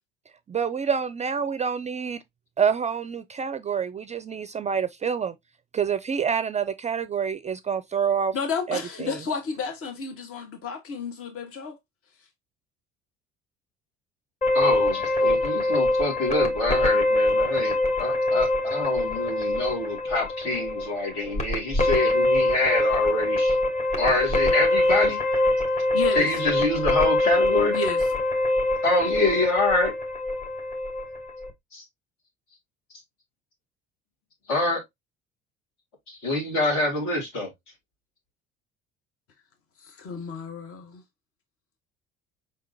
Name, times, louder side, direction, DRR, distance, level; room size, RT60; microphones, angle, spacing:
voice 1, 0.5-2.2 2.6-5.3 5.7-8.4 8.7-9.2, right 7 dB, 20° right, 0.4 m, -27 dB
voice 2, 8.3-11.8 25.9-26.3 27.7-28.1 39.8-41.0, left 5 dB, 45° left, 1.3 m, -31 dB
sound 1, 14.4-31.5, left 1 dB, 20° left, 1.6 m, -24 dB
voice 3, 14.5-23.6 24.0-25.2 26.1-27.7 28.8-29.9 31.7-31.8 34.5-34.8 36.1-37.5, left 2 dB, 65° left, 2.7 m, -26 dB
5.2 x 3.6 x 2.7 m
figure-of-eight pair, 55°, 31 cm